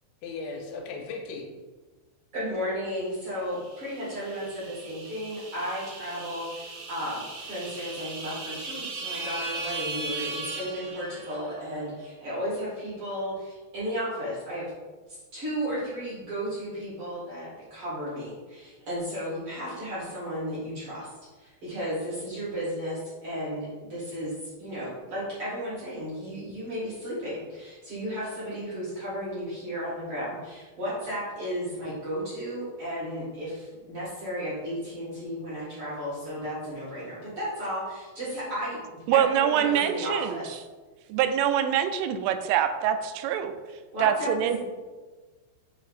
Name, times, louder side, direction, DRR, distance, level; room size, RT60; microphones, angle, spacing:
voice 1, 0.2-1.5, left 4 dB, 85° left, 2 dB, 3.1 m, -36 dB
voice 2, 2.3-14.7 15.1-21.1 21.4-38.8 39.1-40.5 43.9-44.6, equal, 45° right, -9 dB, 1.9 m, -34 dB
sound 1, 3.5-11.6, right 3 dB, 65° right, 2.5 m, -38 dB
voice 3, 39.1-40.4 41.1-43.5 44.0-44.6, right 9 dB, 90° right, 8 dB, 3.1 m, -24 dB
8.1 x 2.8 x 4.8 m, 1.3 s
omnidirectional pair, 5.6 m